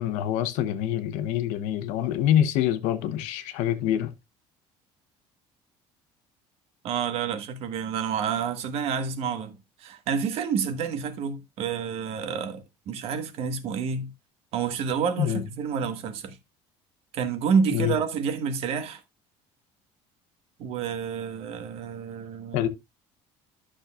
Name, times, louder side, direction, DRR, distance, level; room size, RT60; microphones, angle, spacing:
voice 1, 0.0-4.1 15.2-15.4 17.7-17.9 22.5-22.7, left 11 dB, 85° left, 0.9 m, -25 dB
voice 2, 6.8-14.1 14.5-16.4 17.1-19.0 20.6-22.7, right 6 dB, 55° right, 1.3 m, -29 dB
11.5 x 6.4 x 2.4 m
cardioid pair, 160°, 12 cm